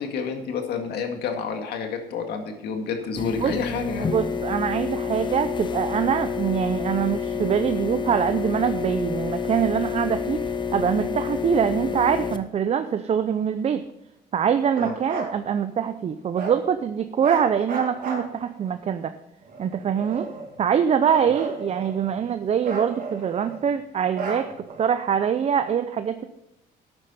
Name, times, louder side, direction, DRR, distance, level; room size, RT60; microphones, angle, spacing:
voice 1, 0.0-4.2 14.8-14.9, left 5 dB, 75° left, 4 dB, 2.1 m, -29 dB
sound 1, 3.1-12.4, left 6 dB, 25° left, 0.8 m, -29 dB
voice 2, 4.1-10.4 10.7-13.8 14.3-19.1 19.6-20.3 20.6-24.5 24.8-26.2, right 8 dB, 40° right, 10 dB, 0.6 m, -24 dB
Bark, 14.7-15.3 16.3-16.6 17.2-18.7 19.5-20.6 21.0-22.2 22.6-23.6 24.1-24.8, right 3 dB, 55° right, 3.1 m, -33 dB
12.0 x 9.1 x 4.3 m, 0.86 s
cardioid pair, 110°, 17 cm